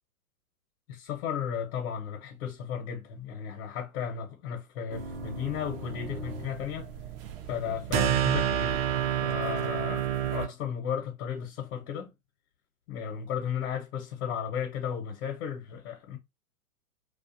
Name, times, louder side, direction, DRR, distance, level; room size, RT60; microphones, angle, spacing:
voice 1, 0.9-6.9 7.5-8.8 9.2-12.1 12.9-16.2, left 8 dB, 65° left, 0.8 m, -34 dB
sound 1, 4.9-10.5, right 9 dB, 40° right, 0.5 m, -30 dB
2.4 x 2.4 x 2.5 m
hypercardioid pair, 115°, 43 cm